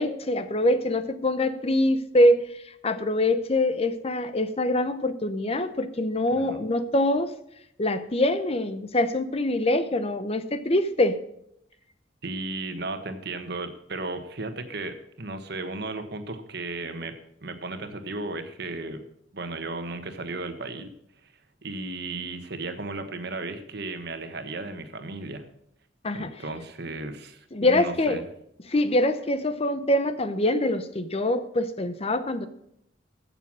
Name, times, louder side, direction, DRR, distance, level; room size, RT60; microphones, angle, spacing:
voice 1, 0.0-7.3 7.8-11.2 26.0-26.3 27.5-28.2 28.7-32.5, left 1 dB, 30° left, 11 dB, 0.8 m, -24 dB
voice 2, 6.3-6.6 12.2-17.1 17.4-19.0 19.3-20.9 21.6-25.4 26.1-28.2, right 2 dB, 60° right, 7 dB, 1.4 m, -35 dB
15.0 x 7.0 x 6.3 m, 0.75 s
head